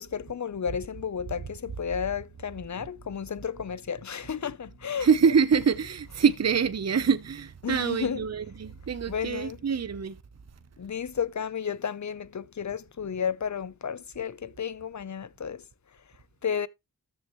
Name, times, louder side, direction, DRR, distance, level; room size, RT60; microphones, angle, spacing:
voice 1, 0.0-5.1 7.6-8.2 9.1-9.6 10.8-15.6 16.4-16.7, left 7 dB, 50° left, 0.8 m, -32 dB
voice 2, 5.0-10.2, right 6 dB, 45° right, 0.8 m, -25 dB
13.5 x 6.6 x 3.1 m
wide cardioid pair, 85°, 37 cm